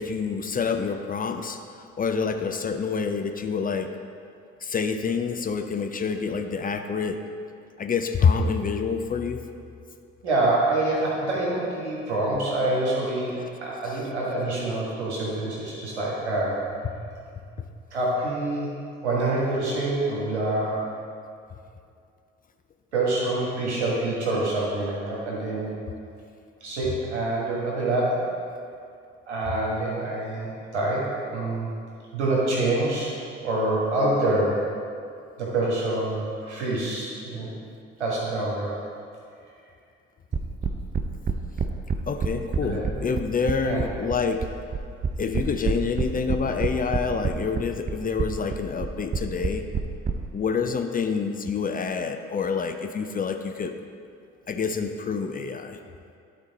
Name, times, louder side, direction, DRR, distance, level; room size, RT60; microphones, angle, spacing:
voice 1, 0.0-3.9 4.6-7.2 7.8-9.4 13.4-13.5 13.9-14.0 17.6-17.7 42.1-44.4 45.2-49.7 50.3-53.7 54.5-55.8, left 5 dB, 25° left, 6 dB, 0.5 m, -27 dB
voice 2, 10.2-16.6 17.9-18.7 19.0-20.8 22.9-25.7 26.6-28.2 29.3-31.7 32.1-33.1 33.4-34.6 35.4-37.5 38.0-38.8 42.6-43.0 43.6-43.8, right 2 dB, 80° right, -5 dB, 1.6 m, -26 dB
sound 1, 40.3-50.1, right 6 dB, 25° right, 0.6 m, -27 dB
11.5 x 4.2 x 4.1 m, 2.4 s
figure-of-eight pair, 50°, 33 cm